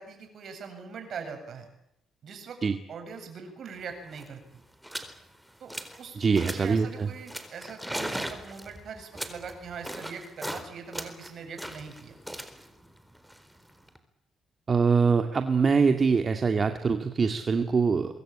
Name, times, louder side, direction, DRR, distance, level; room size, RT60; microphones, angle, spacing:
voice 1, 0.0-1.7 2.2-2.6 2.9-4.6 5.6-5.7 6.0-6.2 6.5-12.2, right 5 dB, 60° right, 6 dB, 7.9 m, -42 dB
sound 1, 3.8-3.9 4.1-4.3 4.8-5.1 5.5-6.0 6.3-6.8 7.3-10.6 10.9-14.0, equal, 5° right, 4.3 m, -38 dB
voice 2, 6.2-7.1 14.7-18.2, right 5 dB, 40° right, 6 dB, 2.3 m, -24 dB
25.0 x 22.0 x 8.9 m, 0.80 s
cardioid pair, 90°, 0 cm